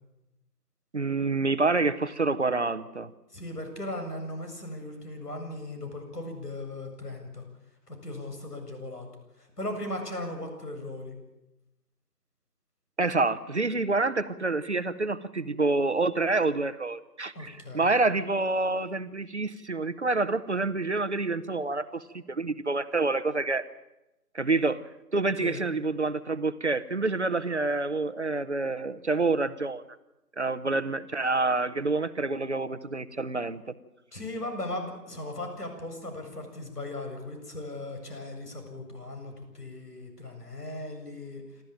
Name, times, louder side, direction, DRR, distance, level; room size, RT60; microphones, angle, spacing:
voice 1, 0.9-3.1 13.0-23.6 24.3-24.8 25.1-29.8 30.4-33.6, right 3 dB, 45° right, 13 dB, 1.0 m, -27 dB
voice 2, 3.3-7.5 7.9-9.1 9.6-11.1 17.3-17.8 25.4-25.6 34.1-41.4, left 1 dB, 70° left, 5 dB, 7.6 m, -37 dB
27.5 x 13.5 x 9.0 m, 0.95 s
figure-of-eight pair, 160°, 48 cm